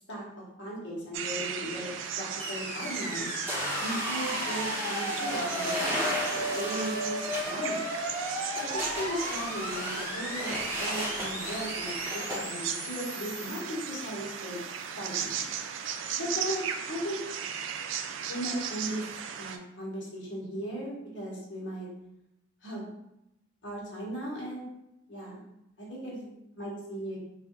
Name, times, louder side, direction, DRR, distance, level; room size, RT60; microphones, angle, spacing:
voice 1, 0.6-1.9 2.2-3.4 3.8-6.1 6.5-7.8 8.6-14.6 15.0-15.5 16.1-16.6 16.9-17.2 18.3-19.0 19.4-21.9 22.6-22.9 23.6-24.7 25.1-25.5 25.8-26.3 26.6-27.2, equal, 75° left, -5 dB, 1.1 m, -37 dB
sound 1, 1.1-19.6, right 8 dB, 90° right, 0.3 m, -37 dB
sound 2, 2.4-14.6, equal, 15° left, 1.1 m, -36 dB
sound 3, 3.5-12.4, equal, 15° right, 0.7 m, -35 dB
3.6 x 2.4 x 2.9 m, 0.86 s
head